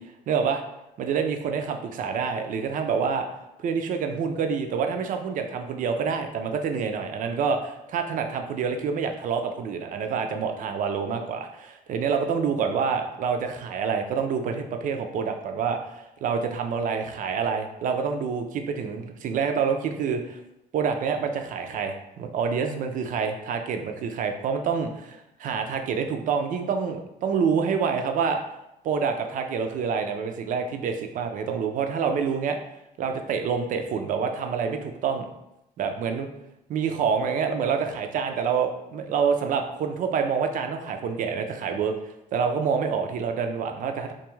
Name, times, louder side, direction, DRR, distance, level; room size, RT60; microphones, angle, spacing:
voice 1, 0.3-0.6 1.0-3.3 3.6-20.4 20.7-28.4 28.8-32.6 33.0-35.3 35.8-36.3 36.7-44.1, right 6 dB, 50° right, 5 dB, 0.4 m, -27 dB
2.5 x 2.3 x 3.0 m, 0.85 s
cardioid pair, 110°, 17 cm